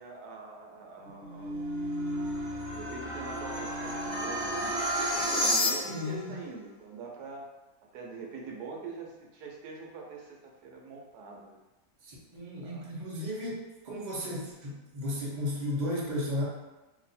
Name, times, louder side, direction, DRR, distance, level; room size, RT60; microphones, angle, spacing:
voice 1, 0.0-1.7 2.7-4.8 5.3-7.5 7.9-11.6 12.6-12.8, right 3 dB, 85° right, 0 dB, 1.2 m, -43 dB
sound 1, 1.0-6.2, equal, 5° right, 0.9 m, -31 dB
voice 2, 5.9-6.3 12.0-16.4, left 1 dB, 35° right, -5 dB, 0.9 m, -34 dB
2.9 x 2.6 x 4.1 m, 1.1 s
omnidirectional pair, 1.7 m